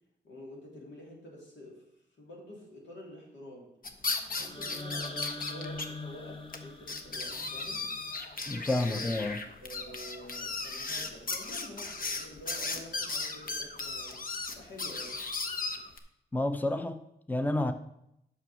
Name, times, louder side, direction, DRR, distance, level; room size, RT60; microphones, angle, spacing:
voice 1, 0.2-1.9 2.2-3.7 4.2-7.9 8.7-9.2 9.6-15.2, left 1 dB, 90° left, -2 dB, 3.2 m, -48 dB
sound 1, 3.8-5.9 6.1-6.2 6.5-6.6 6.9-16.0, left 3 dB, 50° left, 1.2 m, -36 dB
sound 2, 4.4-8.4, left 2 dB, 30° left, 1.2 m, -43 dB
voice 2, 8.5-9.4 16.3-17.7, left 2 dB, 10° left, 9 dB, 0.7 m, -30 dB
8.0 x 6.3 x 6.3 m, 0.80 s
cardioid pair, 65°, 18 cm